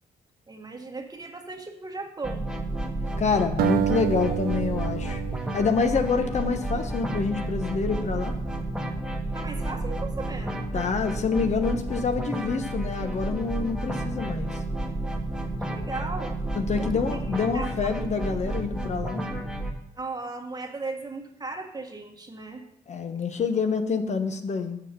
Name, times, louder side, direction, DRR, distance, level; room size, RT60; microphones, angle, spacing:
voice 1, 0.5-2.5 9.3-10.6 15.6-16.3 16.8-17.0 17.4-17.7 20.0-22.6, right 3 dB, 25° right, 3 dB, 1.6 m, -36 dB
sound 1, 2.2-19.7, right 1 dB, 5° right, 1.4 m, -31 dB
voice 2, 3.2-5.2 5.5-8.4 10.7-14.6 16.5-19.3 22.9-24.8, left 5 dB, 50° left, 7 dB, 0.9 m, -27 dB
sound 2, 3.6-6.8, right 11 dB, 75° right, 0.4 m, -29 dB
6.4 x 6.3 x 6.7 m, 0.81 s
supercardioid pair, 65°, 15 cm